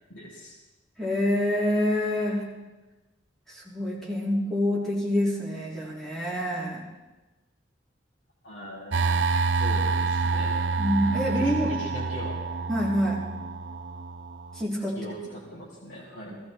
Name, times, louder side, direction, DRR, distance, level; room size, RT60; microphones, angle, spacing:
voice 1, 0.1-0.6 8.4-10.6 11.3-12.4 15.0-16.4, equal, 70° left, -5 dB, 2.4 m, -41 dB
voice 2, 1.0-2.4 3.5-6.8 10.8-11.7 12.7-13.2 14.5-15.1, equal, 5° left, -6 dB, 3.7 m, -26 dB
sound 1, 8.9-14.6, right 4 dB, 75° right, 0.7 m, -27 dB
17.5 x 14.0 x 4.6 m, 1.1 s
head